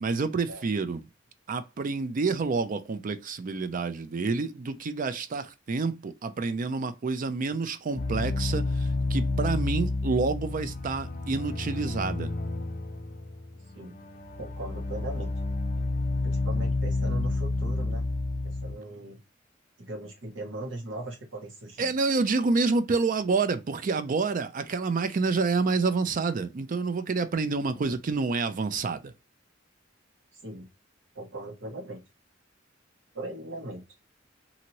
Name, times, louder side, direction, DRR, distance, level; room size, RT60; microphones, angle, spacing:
voice 1, 0.0-1.0 1.5-12.3 21.8-29.1, right 4 dB, 45° right, 0.4 m, -28 dB
sound 1, 8.0-18.7, left 2 dB, 45° left, 0.4 m, -30 dB
voice 2, 14.4-15.6 16.2-18.1 18.4-19.2 19.8-21.9 27.6-27.9 30.4-30.7 31.1-32.0 33.1-33.8, right 2 dB, 75° right, 1.2 m, -39 dB
2.9 x 2.6 x 2.8 m
head